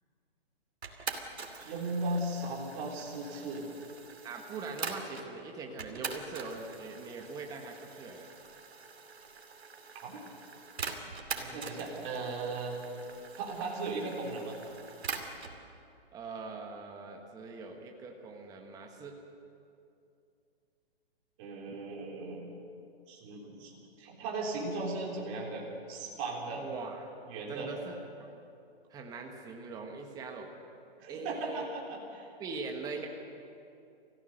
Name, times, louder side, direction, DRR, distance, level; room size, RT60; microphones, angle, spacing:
sound 1, 0.8-5.3 5.8-15.6, right 4 dB, 90° right, 2.7 m, -43 dB
voice 1, 1.6-3.7 10.0-10.2 11.4-12.8 13.4-14.6 21.4-22.5 23.1-26.6 27.3-27.7 31.0-32.3, right 2 dB, 30° right, -2 dB, 3.7 m, -37 dB
voice 2, 4.2-8.3 16.1-19.2 26.5-27.1 27.5-28.3 28.9-30.5 31.1-31.7 32.4-33.1, right 4 dB, 10° right, 2 dB, 1.4 m, -42 dB
28.0 x 16.0 x 6.6 m, 2.6 s
hypercardioid pair, 150°, 31 cm